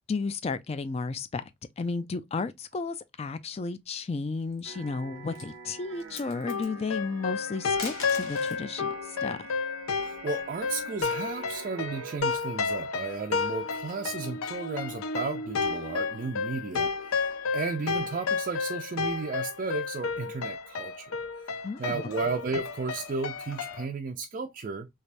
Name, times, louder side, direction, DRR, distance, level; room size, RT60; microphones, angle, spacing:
voice 1, 0.1-1.4 1.8-9.4 21.6-22.0, left 4 dB, 30° left, 0.4 m, -33 dB
sound 1, 4.4-4.9 5.3-5.5 5.9-6.7 7.6-8.6 10.1-11.3, left 4 dB, 75° left, 1.1 m, -42 dB
sound 2, 4.6-12.2, right 4 dB, 85° right, 0.7 m, -46 dB
sound 3, 6.5-23.8, left 5 dB, 90° left, 0.5 m, -32 dB
voice 2, 10.0-24.9, right 4 dB, 40° right, 0.4 m, -34 dB
3.3 x 3.3 x 2.5 m
head